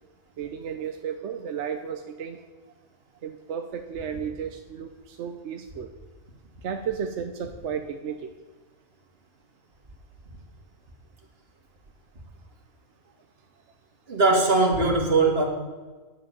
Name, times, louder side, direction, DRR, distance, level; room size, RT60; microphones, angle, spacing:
voice 1, 0.4-2.4 3.2-5.9 6.6-8.3, right 7 dB, 60° right, 6 dB, 0.9 m, -33 dB
voice 2, 14.1-15.4, right 3 dB, 45° right, 1 dB, 2.0 m, -20 dB
9.9 x 7.4 x 6.7 m, 1.3 s
omnidirectional pair, 1.4 m